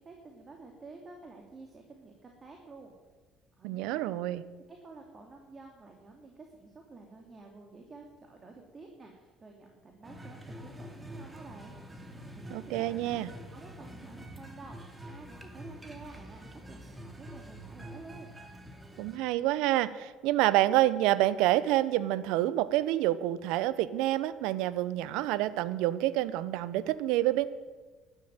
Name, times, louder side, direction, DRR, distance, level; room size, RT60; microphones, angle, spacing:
voice 1, 0.0-2.9 3.6-4.3 4.7-11.8 12.3-13.2 13.5-18.3, right 3 dB, 35° right, 1 dB, 2.9 m, -51 dB
voice 2, 3.6-4.4 12.5-13.3 19.0-27.5, right 15 dB, 80° right, 16 dB, 0.7 m, -28 dB
sound 1, 10.0-19.2, right 1 dB, 20° right, 2.6 m, -46 dB
12.0 x 12.0 x 9.1 m, 1.4 s
supercardioid pair, 70°, 0 cm